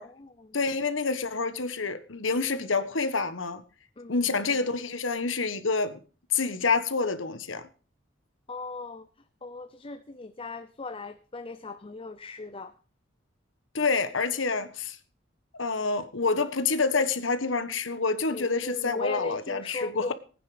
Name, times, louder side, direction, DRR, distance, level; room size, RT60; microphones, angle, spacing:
voice 1, 0.0-0.6 4.0-4.6 8.5-9.1 9.4-12.7 18.3-20.1, left 3 dB, 30° left, 0.7 m, -38 dB
voice 2, 0.5-3.6 4.1-6.0 6.3-7.7 13.7-15.0 15.5-20.1, left 4 dB, 85° left, 1.4 m, -27 dB
19.0 x 9.6 x 5.1 m
head